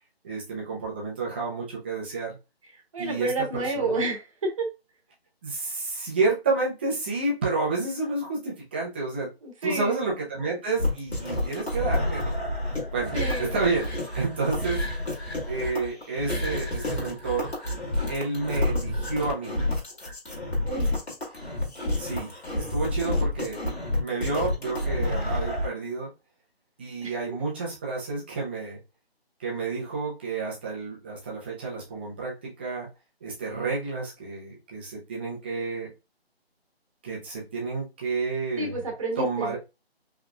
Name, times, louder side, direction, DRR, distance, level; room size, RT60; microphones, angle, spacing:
voice 1, 0.2-2.4 3.0-4.0 5.4-9.3 9.6-12.4 12.9-13.9 14.1-14.8 15.5-17.5 18.1-19.5 22.0-22.3 22.7-23.6 24.0-26.1 26.8-28.8 29.4-32.9 33.2-35.9 37.0-38.8 39.2-39.6, right 3 dB, 10° right, -4 dB, 0.8 m, -30 dB
voice 2, 2.9-4.7 9.4-10.0 13.1-13.5 20.6-20.9 27.0-27.1 38.6-39.6, right 2 dB, 30° right, 0 dB, 1.4 m, -30 dB
sound 1, 10.8-25.7, left 1 dB, 85° left, 2.4 m, -29 dB
5.1 x 3.5 x 2.3 m, 0.26 s
figure-of-eight pair, 160°, 31 cm